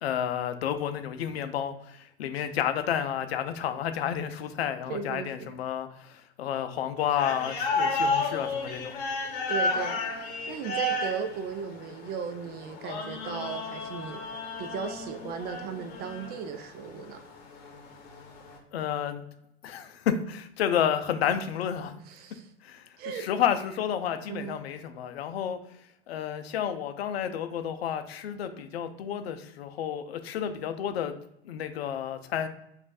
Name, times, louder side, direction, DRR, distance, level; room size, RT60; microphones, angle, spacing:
voice 1, 0.0-8.9 18.7-19.2 19.6-21.9 22.6-25.6 26.1-31.1 31.4-32.5, left 9 dB, 70° left, 8 dB, 0.6 m, -31 dB
voice 2, 4.9-5.5 9.5-14.2 14.6-17.2 22.0-22.5 23.0-23.3 24.3-24.6, right 6 dB, 30° right, 8 dB, 0.4 m, -36 dB
sound 1, 7.0-18.6, left 2 dB, 50° left, 1.0 m, -33 dB
5.0 x 2.5 x 2.5 m, 0.80 s
hypercardioid pair, 90°, 33 cm